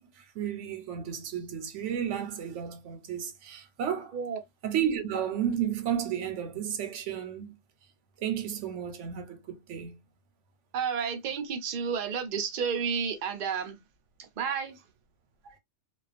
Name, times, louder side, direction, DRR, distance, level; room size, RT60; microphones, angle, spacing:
voice 1, 0.0-4.1 4.6-7.6 8.2-10.0 15.4-15.6, right 9 dB, 85° right, 1.0 m, -33 dB
voice 2, 10.7-13.8 14.2-14.8, right 6 dB, 55° right, 0.6 m, -31 dB
2.3 x 2.2 x 2.4 m
omnidirectional pair, 1.2 m